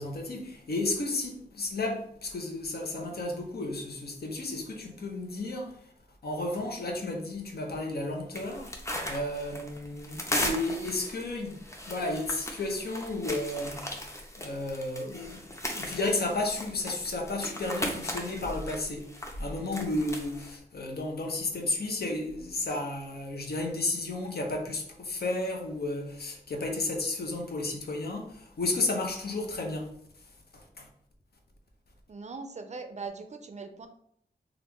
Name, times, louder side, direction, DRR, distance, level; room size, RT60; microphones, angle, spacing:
voice 1, 0.0-5.8 6.2-8.7 9.1-14.0 14.4-29.9 30.5-30.9, left 2 dB, 70° left, 0.7 m, -33 dB
sound 1, 8.3-20.6, left 1 dB, 15° left, 0.6 m, -37 dB
voice 2, 32.1-33.9, right 4 dB, 45° right, 0.4 m, -40 dB
2.9 x 2.4 x 3.4 m
wide cardioid pair, 85°, 17 cm